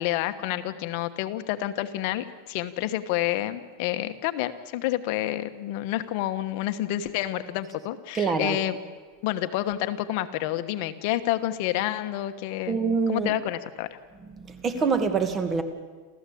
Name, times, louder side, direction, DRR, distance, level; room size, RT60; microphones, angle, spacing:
voice 1, 0.0-8.8 9.2-12.8 13.1-13.9, left 14 dB, 55° left, 10 dB, 1.2 m, -29 dB
voice 2, 8.1-8.6 12.7-13.3 14.2-15.6, right 5 dB, 20° right, 9 dB, 2.1 m, -25 dB
28.5 x 14.5 x 8.5 m, 1.5 s
supercardioid pair, 150°, 0 cm